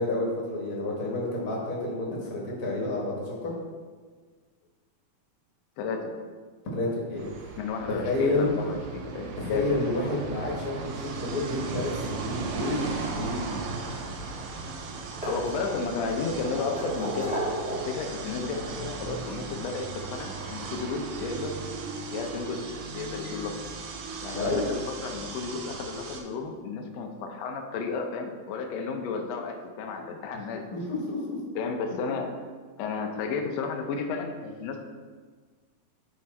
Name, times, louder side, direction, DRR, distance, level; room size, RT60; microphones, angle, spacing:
voice 1, 0.0-3.5 6.7-7.6 7.9-8.5 9.4-13.5 24.3-24.6 30.7-31.4, left 2 dB, 45° left, -3 dB, 1.2 m, -30 dB
voice 2, 5.8-6.1 7.6-10.0 15.2-17.4 17.7-21.6 22.1-22.6 22.9-23.5 24.2-30.6 31.5-32.4 32.8-34.8, left 4 dB, 80° left, 3 dB, 1.5 m, -33 dB
sound 1, 7.2-26.2, right 4 dB, 75° right, 1.6 m, -37 dB
sound 2, 13.9-14.6 14.8-16.0 16.5-18.1 19.3-19.4 21.0-21.1 21.4-21.5, right 1 dB, 5° right, 0.5 m, -34 dB
9.9 x 3.7 x 4.3 m, 1.5 s
omnidirectional pair, 3.9 m